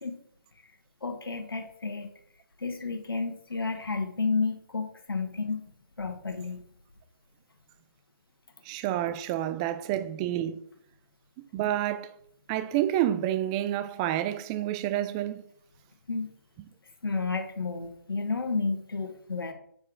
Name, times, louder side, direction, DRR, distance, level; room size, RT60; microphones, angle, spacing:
voice 1, 1.0-2.1 2.6-5.7 6.0-6.6 16.1-16.3 17.0-19.5, left 4 dB, 85° left, 1.5 m, -31 dB
voice 2, 8.7-10.6 11.5-12.1 12.5-15.4, right 12 dB, 15° right, 0.3 m, -29 dB
8.8 x 4.4 x 3.7 m
hypercardioid pair, 150°, 12 cm